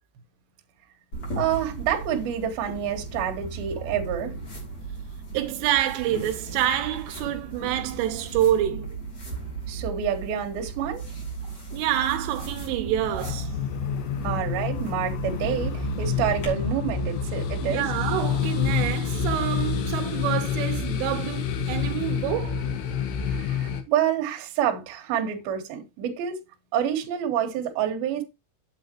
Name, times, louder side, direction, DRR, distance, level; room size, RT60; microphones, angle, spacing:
sound 1, 1.1-16.5, right 3 dB, 25° left, 2.8 m, -37 dB
voice 1, 1.4-4.3 9.7-11.0 14.2-17.9 23.3-26.4 26.7-28.2, right 9 dB, 60° right, 2.9 m, -28 dB
voice 2, 5.3-8.9 11.7-13.6 17.6-22.6, right 12 dB, 85° right, 3.2 m, -27 dB
sound 2, 12.9-23.8, left 6 dB, 70° left, 3.0 m, -28 dB
8.9 x 8.1 x 3.1 m
omnidirectional pair, 5.7 m